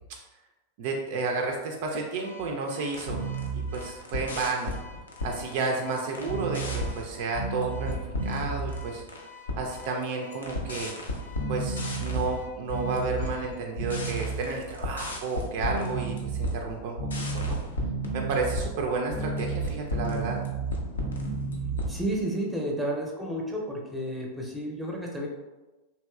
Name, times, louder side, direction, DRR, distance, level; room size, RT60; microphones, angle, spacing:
voice 1, 0.8-3.3 3.5-4.7 5.2-9.0 9.6-10.9 11.5-17.6 18.1-20.4, right 3 dB, 50° right, 1 dB, 0.3 m, -31 dB
Car / Alarm, 2.2-13.6, left 4 dB, 85° left, 0.8 m, -49 dB
sound 1, 2.8-9.2 9.5-10.0 10.3-22.2, right 2 dB, 70° left, 0.5 m, -32 dB
voice 2, 21.9-25.3, right 1 dB, 5° right, -2 dB, 0.6 m, -31 dB
2.9 x 2.8 x 2.3 m, 1.1 s
figure-of-eight pair, 90°, 0 cm